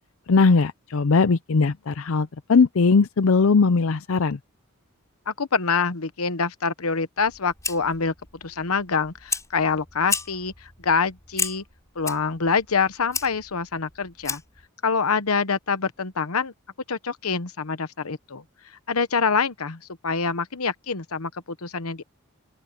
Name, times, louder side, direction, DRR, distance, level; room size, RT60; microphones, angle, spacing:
voice 1, 0.3-4.4, left 4 dB, 65° left, 0.5 m, -19 dB
voice 2, 5.3-8.1 8.4-11.6 12.0-14.4 14.8-16.5 16.9-18.4 18.9-22.0, left 5 dB, 90° left, 1.0 m, -25 dB
Fire, 7.2-14.7, left 4 dB, 15° left, 5.2 m, -34 dB
open air
head